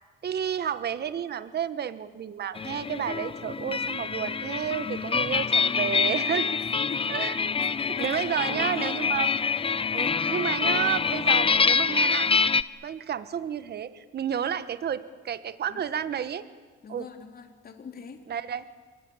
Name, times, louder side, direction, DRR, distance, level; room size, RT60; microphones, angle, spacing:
voice 1, 0.2-6.5 7.1-7.4 7.9-9.3 9.9-12.3 12.8-16.4 16.9-17.1 18.3-18.6, right 9 dB, 55° right, 13 dB, 1.3 m, -31 dB
sound 1, 2.6-12.6, left 5 dB, 30° left, 0.8 m, -26 dB
voice 2, 6.8-7.2 7.6-7.7 7.9-8.9 9.9-10.3 15.7-15.8 16.8-18.2, left 6 dB, 50° left, 4 dB, 3.8 m, -42 dB
26.5 x 23.0 x 9.0 m, 1.5 s
cardioid pair, 90°, 20 cm